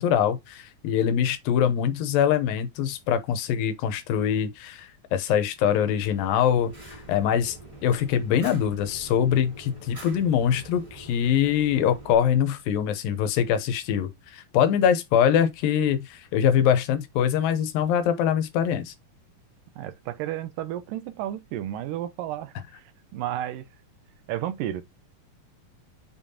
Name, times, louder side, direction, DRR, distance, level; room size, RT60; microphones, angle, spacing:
voice 1, 0.0-7.6 7.8-18.9, left 9 dB, 80° left, 2.6 m, -23 dB
Fire, 6.0-12.1, right 2 dB, 10° right, 2.3 m, -45 dB
voice 2, 19.8-23.7 24.3-24.8, right 12 dB, 80° right, 2.2 m, -32 dB
7.1 x 5.4 x 2.8 m
omnidirectional pair, 4.0 m